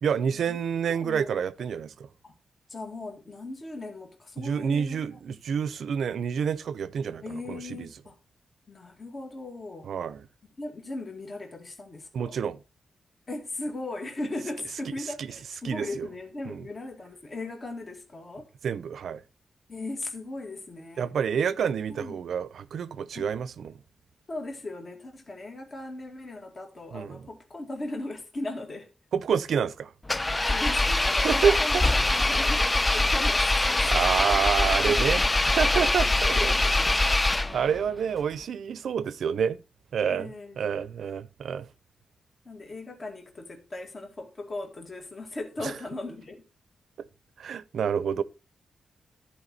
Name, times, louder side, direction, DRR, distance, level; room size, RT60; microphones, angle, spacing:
voice 1, 0.0-1.9 4.4-7.9 9.8-10.3 12.1-12.6 15.2-15.3 15.6-16.1 16.5-16.6 18.6-19.2 21.0-23.7 26.9-27.3 29.1-29.9 31.2-31.8 33.7-35.2 35.5-36.5 36.9-39.6 39.9-41.7 45.6-45.7 47.4-48.2, right 7 dB, 80° right, 0.6 m, -28 dB
voice 2, 0.9-1.3 2.2-2.3 2.7-5.0 7.2-8.2 8.7-9.9 10.6-12.4 13.3-18.5 19.7-21.1 21.9-22.2 23.2-23.3 24.3-28.9 30.5-31.8 32.0-33.9 34.6-35.3 36.3-37.0 40.1-40.9 42.5-46.4, left 2 dB, 35° left, 2.0 m, -38 dB
Engine, 30.1-37.8, left 2 dB, 15° left, 0.3 m, -23 dB
13.5 x 4.9 x 4.1 m
wide cardioid pair, 125°, 0 cm